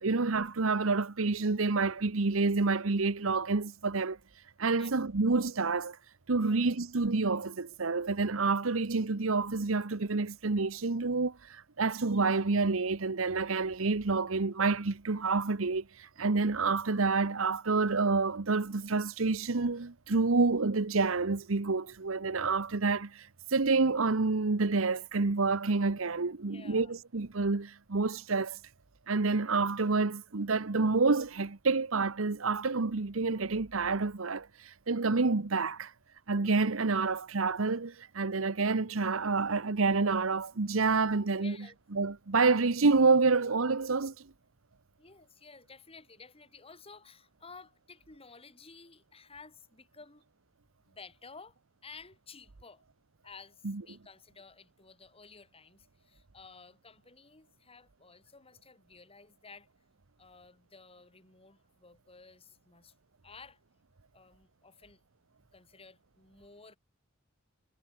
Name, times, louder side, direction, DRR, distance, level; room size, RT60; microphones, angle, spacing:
voice 1, 0.0-4.2 4.6-6.0 6.3-28.6 29.1-35.9 36.3-41.6 41.9-44.3 53.6-53.8, right 4 dB, 75° right, 1.0 m, -28 dB
voice 2, 26.4-27.0 41.3-41.8 45.0-50.2 50.8-52.8 53.2-59.7 60.2-62.9 63.2-63.6 64.1-65.0 65.5-66.8, left 4 dB, 30° left, 3.3 m, -54 dB
head